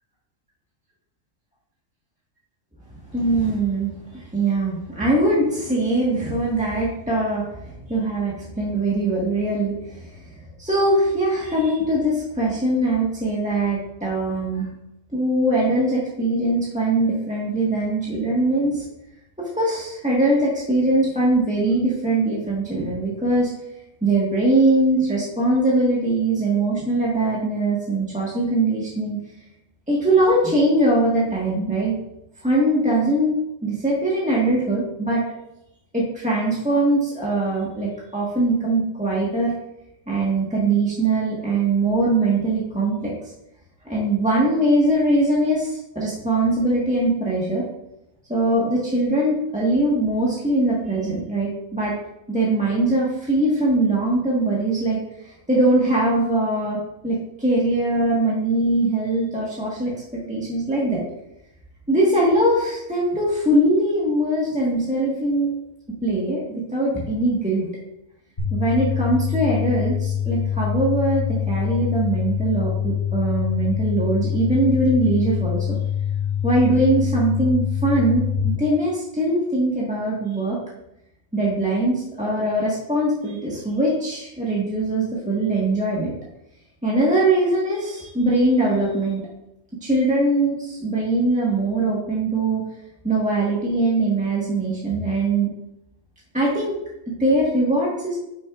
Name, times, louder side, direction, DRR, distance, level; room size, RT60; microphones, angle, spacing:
voice 1, 3.1-10.2 10.6-14.7 15.1-18.8 19.4-23.5 24.0-29.2 29.9-32.0 32.4-35.2 35.9-39.5 40.1-43.1 43.9-47.6 48.3-51.9 52.3-61.0 61.9-65.5 66.0-66.4 66.7-67.7 68.5-75.8 76.4-80.6 81.3-86.1 86.8-89.2 89.8-92.6 93.0-95.5 96.3-96.8 97.1-98.1, right 2 dB, 5° right, -6 dB, 1.3 m, -21 dB
sound 1, 68.4-78.4, left 9 dB, 45° left, 3.0 m, -25 dB
9.6 x 6.2 x 2.4 m, 0.87 s
omnidirectional pair, 1.4 m